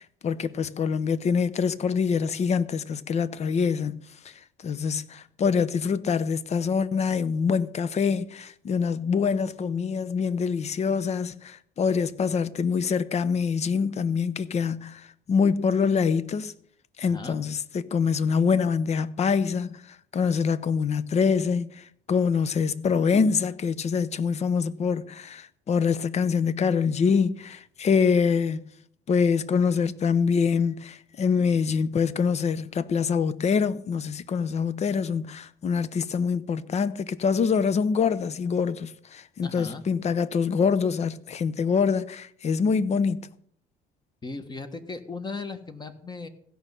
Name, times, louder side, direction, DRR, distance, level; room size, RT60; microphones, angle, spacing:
voice 1, 0.0-4.0 4.6-15.0 15.3-16.5 17.0-19.8 20.1-28.6 29.1-43.3, left 6 dB, 40° left, 0.7 m, -25 dB
voice 2, 17.0-17.4 39.4-39.8 44.2-46.3, left 3 dB, 25° left, 1.4 m, -37 dB
16.0 x 5.5 x 7.5 m
cardioid pair, 110°, 17 cm